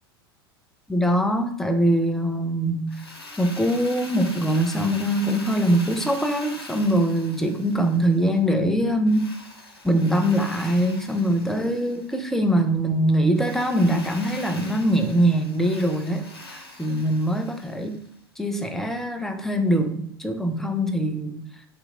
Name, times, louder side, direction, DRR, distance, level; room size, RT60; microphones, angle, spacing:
voice 1, 0.9-2.9 3.4-9.3 9.8-18.0 18.4-21.4, right 1 dB, 5° left, 6 dB, 0.4 m, -23 dB
Drill, 2.9-8.4 9.1-12.4 13.3-18.1, left 2 dB, 85° left, 0.7 m, -42 dB
3.1 x 2.8 x 3.6 m, 0.70 s
figure-of-eight pair, 85°, 13 cm